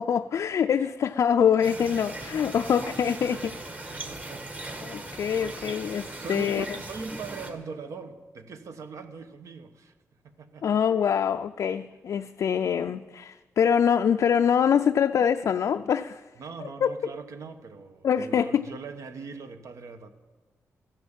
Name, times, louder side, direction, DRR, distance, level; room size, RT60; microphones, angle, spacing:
voice 1, 0.0-3.4 4.8-6.6 10.6-16.2 16.6-16.9 18.0-18.6, left 8 dB, 65° left, 7 dB, 0.4 m, -24 dB
sound 1, 1.6-7.5, right 2 dB, 30° right, 1.6 m, -39 dB
voice 2, 2.8-3.5 3.9-4.5 6.2-9.9 10.2-10.8 16.4-20.1, right 4 dB, 70° right, 8 dB, 1.2 m, -41 dB
14.5 x 10.5 x 7.4 m, 1.3 s
wide cardioid pair, 125°, 6 cm